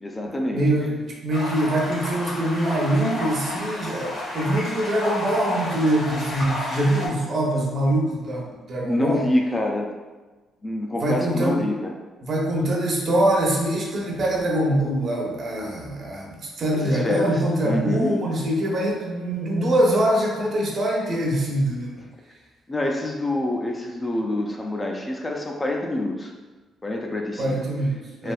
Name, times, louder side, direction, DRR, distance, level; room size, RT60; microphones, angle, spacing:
voice 1, 0.0-0.6 7.1-7.2 8.8-9.9 10.6-11.9 16.7-18.2 22.7-26.3 26.8-27.6 28.2-28.3, left 1 dB, 20° left, 1 dB, 0.4 m, -26 dB
voice 2, 0.5-9.2 11.0-11.6 12.2-21.9 27.4-28.3, right 1 dB, 55° right, -2 dB, 0.8 m, -23 dB
sound 1, 1.3-7.1, left 1 dB, 75° left, 1.1 m, -31 dB
3.3 x 2.6 x 2.3 m, 1.2 s
cardioid pair, 90°, 0 cm